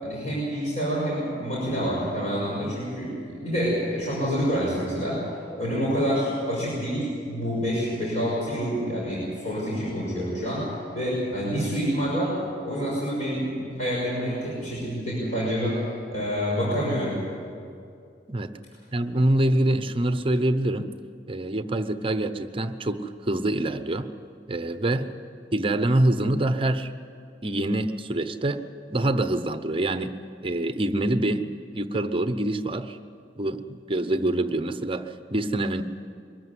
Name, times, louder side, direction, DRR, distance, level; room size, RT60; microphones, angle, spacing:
voice 1, 0.0-5.2 5.6-10.7 10.9-12.3 12.6-15.8 16.1-17.2, equal, 45° left, -6 dB, 6.0 m, -27 dB
voice 2, 18.9-20.9 21.3-24.1 24.5-25.1 25.5-26.9 27.4-28.6 28.9-30.1 30.4-33.0 33.4-35.8, right 1 dB, 30° right, 10 dB, 0.8 m, -25 dB
23.0 x 14.0 x 9.6 m, 2.4 s
head